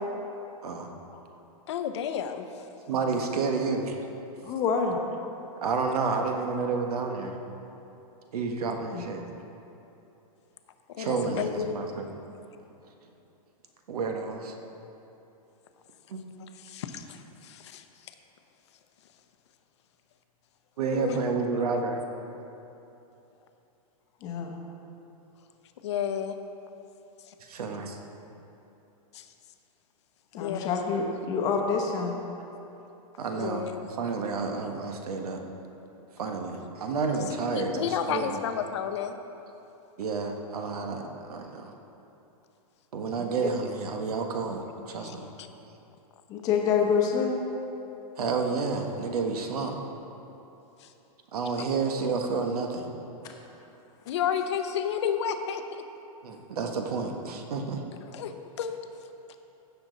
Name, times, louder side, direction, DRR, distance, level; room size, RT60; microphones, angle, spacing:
voice 1, 1.7-2.5 11.0-11.7 16.6-17.2 17.4-17.8 20.9-21.2 25.8-26.3 29.1-29.2 30.4-30.7 33.3-33.8 37.4-39.2 45.0-45.2 54.1-55.6 58.1-58.3 58.6-58.8, left 8 dB, 50° left, 7 dB, 0.7 m, -31 dB
voice 2, 2.9-4.0 5.6-7.4 8.3-9.2 11.0-12.2 13.9-14.5 16.1-16.2 20.8-22.0 27.5-28.0 33.2-33.6 34.0-35.4 36.2-38.4 40.0-41.7 42.9-45.3 48.2-49.8 51.3-52.9 56.2-57.8, right 4 dB, 85° right, 3 dB, 1.4 m, -30 dB
voice 3, 4.4-5.0 8.9-9.0 11.0-11.3 24.2-24.5 30.3-32.1 43.2-43.5 46.3-47.4, left 6 dB, 20° left, 1 dB, 0.9 m, -27 dB
16.0 x 7.0 x 4.0 m, 2.9 s
supercardioid pair, 175°, 19 cm